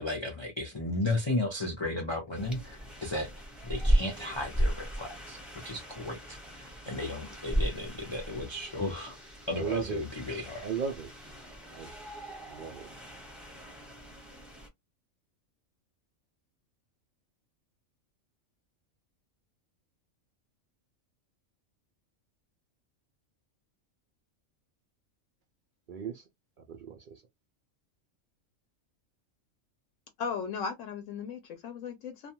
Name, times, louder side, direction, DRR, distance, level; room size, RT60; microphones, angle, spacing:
voice 1, 0.0-9.2 9.5-10.6, left 2 dB, 35° left, 0.4 m, -35 dB
sound 1, 2.3-14.7, equal, ahead, 0.7 m, -35 dB
voice 2, 9.5-10.0 10.6-11.1 11.7-11.9 12.4-12.9 25.9-26.2 26.6-27.2, right 6 dB, 70° right, 0.4 m, -36 dB
voice 3, 30.2-32.3, left 6 dB, 75° left, 0.9 m, -36 dB
2.4 x 2.2 x 2.8 m
omnidirectional pair, 1.4 m